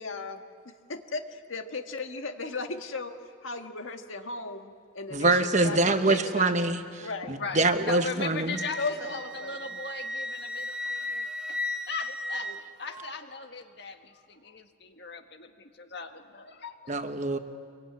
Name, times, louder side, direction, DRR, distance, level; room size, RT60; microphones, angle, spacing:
voice 1, 0.0-3.1 3.4-6.5 7.0-7.3 8.8-9.6 12.4-12.5, left 3 dB, 80° left, 5 dB, 1.8 m, -36 dB
voice 2, 5.1-8.6 16.9-17.4, right 2 dB, 35° right, 8 dB, 1.2 m, -25 dB
voice 3, 7.3-11.6 11.9-17.0, left 4 dB, 55° left, 6 dB, 1.7 m, -39 dB
Wind instrument woodwind instrument, 8.5-13.1, left 1 dB, 5° right, 1.1 m, -35 dB
25.5 x 23.0 x 9.6 m, 2.2 s
head